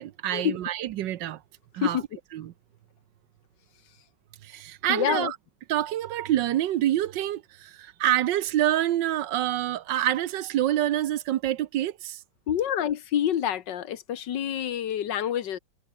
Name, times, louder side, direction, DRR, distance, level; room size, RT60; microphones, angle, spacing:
voice 1, 0.0-1.4 1.7-2.0 2.3-2.5 4.4-5.4 5.7-12.2, right 12 dB, 75° right, 1.4 m, -27 dB
voice 2, 4.9-5.3 12.5-15.6, left 10 dB, 75° left, 1.7 m, -27 dB
omnidirectional pair, 2.0 m